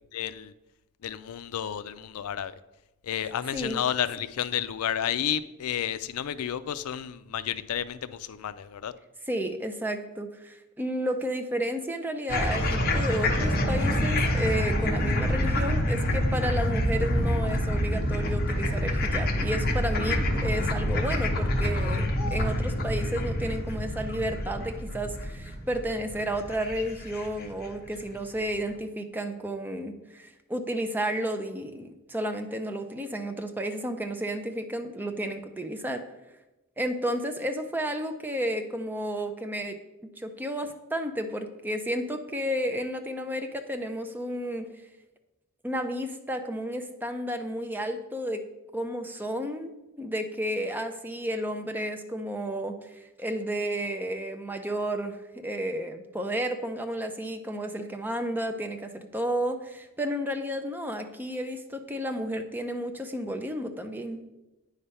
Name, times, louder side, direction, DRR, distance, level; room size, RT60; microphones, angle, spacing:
voice 1, 0.1-0.5 1.0-2.5 3.0-8.9, left 9 dB, 75° left, 14 dB, 0.4 m, -31 dB
voice 2, 9.3-36.0 36.8-39.8 40.0-44.7 45.6-48.4 48.7-49.7 50.0-52.9 53.2-64.2, equal, 10° right, 6 dB, 0.5 m, -32 dB
sound 1, 12.3-27.7, left 1 dB, 45° left, 0.9 m, -27 dB
9.5 x 3.3 x 5.5 m, 1.0 s
head